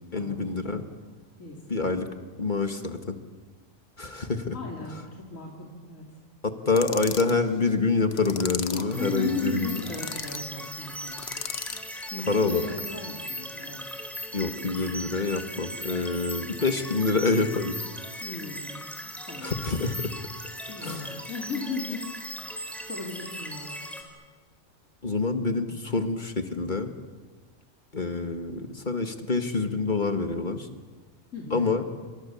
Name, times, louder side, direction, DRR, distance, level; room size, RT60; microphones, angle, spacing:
voice 1, 0.1-0.8 1.7-2.1 2.4-3.2 4.0-4.6 6.4-9.9 12.3-12.7 14.3-17.8 19.4-20.1 20.8-21.2 25.0-26.9 27.9-30.7 31.5-31.8, left 3 dB, 35° left, 7 dB, 1.9 m, -26 dB
voice 2, 1.4-1.8 4.5-6.1 8.7-11.3 12.1-13.8 18.2-18.8 19.3-19.5 20.7-22.1 22.8-23.8 31.3-31.7, left 3 dB, 75° left, -2 dB, 3.5 m, -36 dB
sound 1, 6.7-7.4 8.1-9.0 9.6-10.4 11.1-11.9, left 6 dB, 55° left, 1.3 m, -36 dB
sound 2, 8.9-24.0, equal, ahead, 4.0 m, -38 dB
28.5 x 27.0 x 7.1 m, 1.4 s
omnidirectional pair, 1.4 m